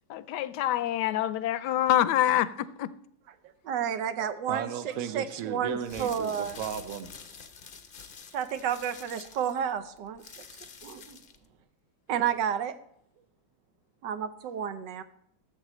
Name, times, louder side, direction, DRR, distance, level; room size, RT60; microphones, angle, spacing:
voice 1, 0.1-2.9, left 12 dB, 75° left, 1.1 m, -26 dB
voice 2, 3.7-4.7 5.1-6.6 8.3-10.4 10.8-11.2 12.1-12.7 14.0-15.0, right 8 dB, 80° right, 1.4 m, -31 dB
voice 3, 4.5-7.4, right 8 dB, 60° right, 1.1 m, -35 dB
sound 1, 5.7-11.5, left 5 dB, 50° left, 0.6 m, -47 dB
14.5 x 7.5 x 3.0 m
omnidirectional pair, 1.9 m